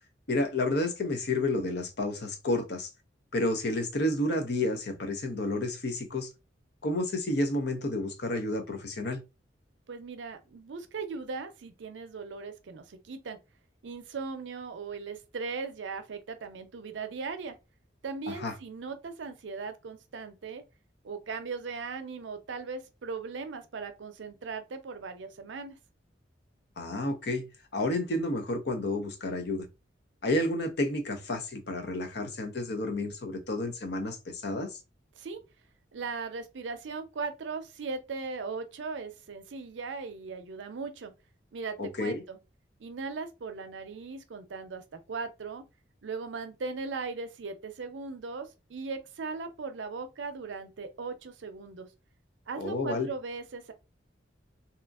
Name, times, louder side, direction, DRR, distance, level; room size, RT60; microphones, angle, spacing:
voice 1, 0.3-2.9 3.3-6.3 6.8-9.2 18.3-18.5 26.8-29.7 30.2-34.8 41.8-42.2 52.6-53.1, left 2 dB, 65° left, 0.6 m, -30 dB
voice 2, 9.9-13.4 13.8-17.6 18.0-20.6 21.0-25.8 35.2-35.4 35.9-41.1 41.5-42.4 42.8-45.7 46.0-51.9 52.5-53.7, right 4 dB, 85° right, 0.5 m, -38 dB
2.8 x 2.5 x 2.3 m
head